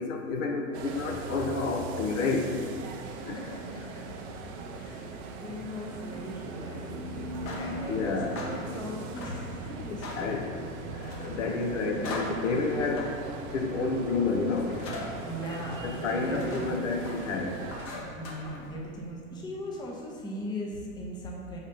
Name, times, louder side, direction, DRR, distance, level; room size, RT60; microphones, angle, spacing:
voice 1, 0.0-2.5 3.3-3.4 7.9-8.4 10.2-10.5 10.9-13.2 13.5-14.8 15.8-17.6, left 3 dB, 60° left, 2 dB, 0.8 m, -30 dB
sound 1, 0.7-17.9, right 3 dB, 35° right, 0.6 m, -39 dB
voice 2, 3.4-4.1 4.7-7.1 7.5-10.7 15.2-15.9 16.1-16.8 18.0-21.6, left 1 dB, 10° left, -2 dB, 0.7 m, -39 dB
sound 2, 7.2-19.1, left 2 dB, 30° left, 1.0 m, -43 dB
5.1 x 4.0 x 5.4 m, 2.1 s
hypercardioid pair, 100°, 42 cm